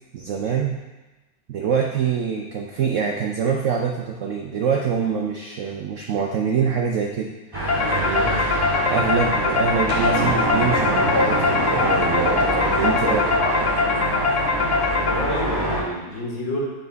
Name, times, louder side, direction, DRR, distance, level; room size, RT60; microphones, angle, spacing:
voice 1, 0.1-0.8 1.5-7.3 7.8-8.4 8.9-13.2, right 6 dB, 75° right, 1 dB, 0.7 m, -25 dB
sound 1, 7.5-15.8, right 1 dB, 15° right, 1.7 m, -24 dB
sound 2, 7.7-15.5, left 4 dB, 60° left, 0.8 m, -23 dB
sound 3, 9.9-14.6, equal, 40° left, 1.4 m, -32 dB
voice 2, 12.7-13.1 14.8-16.7, left 1 dB, 85° left, -3 dB, 2.2 m, -29 dB
8.4 x 4.2 x 4.0 m, 1.1 s
omnidirectional pair, 2.0 m